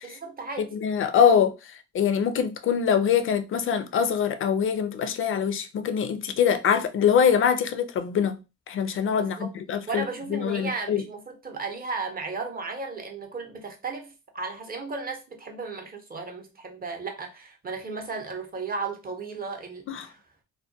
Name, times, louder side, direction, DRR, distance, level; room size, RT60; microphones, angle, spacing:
voice 1, 0.0-0.7 9.2-9.5 9.9-20.2, right 4 dB, 30° right, 0.7 m, -35 dB
voice 2, 0.6-8.4 8.7-11.0 19.9-20.1, left 7 dB, 45° left, 0.4 m, -24 dB
2.2 x 2.1 x 2.6 m
cardioid pair, 90°, 30 cm